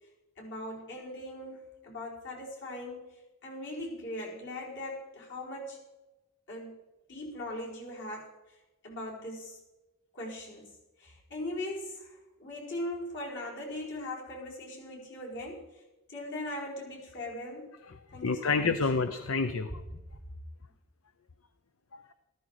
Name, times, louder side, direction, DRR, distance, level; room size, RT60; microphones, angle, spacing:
voice 1, 0.4-5.8 6.5-6.8 7.1-8.3 8.8-9.6 10.1-10.7 11.0-15.6 16.1-17.7 18.1-18.7, left 1 dB, 60° left, -3 dB, 4.8 m, -40 dB
voice 2, 17.9-19.7 21.9-22.1, left 4 dB, 75° left, 10 dB, 0.8 m, -29 dB
14.0 x 14.0 x 4.8 m, 1.1 s
head